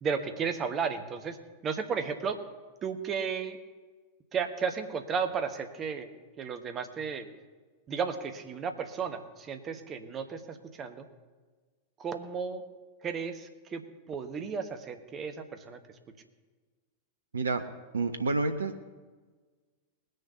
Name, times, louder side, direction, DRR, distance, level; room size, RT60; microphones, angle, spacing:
voice 1, 0.0-1.4 1.6-2.4 2.8-3.6 4.3-6.1 6.4-7.3 7.9-11.0 12.0-12.6 13.0-13.8 14.1-15.8, right 6 dB, 25° right, 7 dB, 1.3 m, -34 dB
voice 2, 17.3-17.7 17.9-18.9, right 3 dB, 70° right, 8 dB, 0.7 m, -29 dB
20.0 x 6.8 x 5.6 m, 1.4 s
figure-of-eight pair, 90°, 0 cm